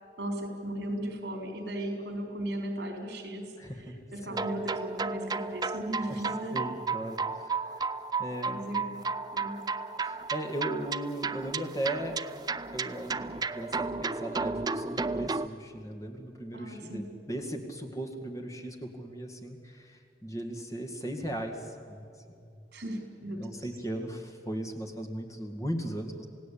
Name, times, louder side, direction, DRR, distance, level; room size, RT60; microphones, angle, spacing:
voice 1, 0.2-3.5 4.1-6.6 8.5-8.9 9.3-9.7 16.5-17.1 22.7-23.9, right 1 dB, 70° right, 3 dB, 4.6 m, -36 dB
voice 2, 3.6-4.0 4.3-4.4 6.1-6.2 6.5-7.8 8.2-8.6 10.0-12.2 12.7-22.4 23.3-26.3, right 1 dB, 20° left, 3 dB, 2.0 m, -37 dB
sound 1, 4.3-15.5, right 4 dB, 20° right, 0.5 m, -33 dB
28.0 x 17.5 x 8.7 m, 2.6 s
head